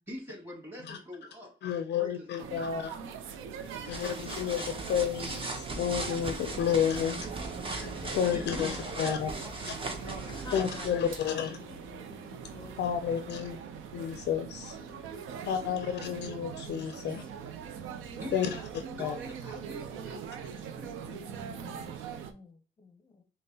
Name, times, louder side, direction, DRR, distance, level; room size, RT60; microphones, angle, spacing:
voice 1, 0.1-1.6 2.0-2.8 3.6-3.7 8.2-11.8 13.1-13.2 16.5-16.7 17.0-17.3 18.2-21.0, equal, 10° right, 2.0 m, -45 dB
voice 2, 1.6-3.0 3.9-7.3 7.5-9.3 9.7-9.8 10.5-11.5 12.8-13.6 13.9-14.8 15.4-17.2 18.3-18.6 19.0-19.2, left 8 dB, 60° left, 0.4 m, -31 dB
sound 1, 2.4-22.3, right 7 dB, 85° right, 0.5 m, -42 dB
sound 2, 3.6-11.3, right 2 dB, 25° right, 0.7 m, -39 dB
voice 3, 10.3-11.1 11.5-13.2 14.7-15.2 16.7-17.1 21.1-21.9 22.3-23.2, left 3 dB, 20° left, 0.7 m, -50 dB
5.2 x 2.1 x 2.7 m
cardioid pair, 90°, 20 cm